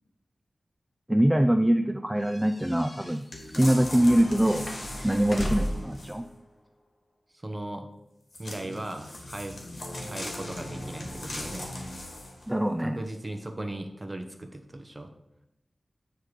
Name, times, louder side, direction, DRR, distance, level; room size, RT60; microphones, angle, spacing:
voice 1, 1.1-3.2 3.6-4.7 5.0-6.2 12.5-13.0, right 1 dB, 10° right, 7 dB, 0.3 m, -23 dB
sound 1, 2.2-6.0, equal, 30° left, 1.2 m, -36 dB
sound 2, 3.3-6.3 8.3-12.5 13.1-13.2, left 1 dB, 70° left, 1.7 m, -38 dB
voice 2, 7.3-7.9 8.4-9.7 10.1-11.7 12.8-15.1, right 1 dB, 25° right, 5 dB, 1.0 m, -38 dB
9.1 x 3.3 x 4.8 m, 0.86 s
wide cardioid pair, 60°, 0 cm